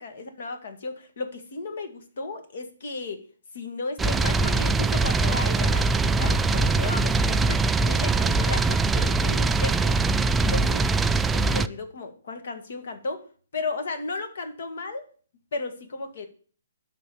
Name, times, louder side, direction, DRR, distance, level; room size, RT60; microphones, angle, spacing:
voice 1, 0.0-3.2 3.5-10.0 10.4-13.3 13.5-15.1 15.5-16.3, left 3 dB, 60° left, 8 dB, 1.8 m, -34 dB
sound 1, 4.0-11.7, right 3 dB, 10° right, 0.3 m, -22 dB
11.0 x 4.0 x 7.1 m, 0.43 s
figure-of-eight pair, 135°, 0 cm